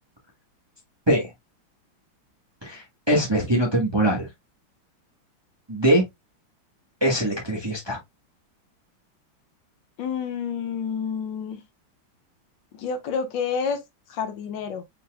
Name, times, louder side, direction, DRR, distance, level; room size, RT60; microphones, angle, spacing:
voice 1, 2.6-4.3 5.7-6.0 7.0-8.0, right 1 dB, 15° right, 1.0 m, -22 dB
voice 2, 10.0-11.6 12.7-13.8 14.1-14.8, left 6 dB, 70° left, 1.4 m, -29 dB
5.4 x 4.1 x 2.2 m
omnidirectional pair, 2.2 m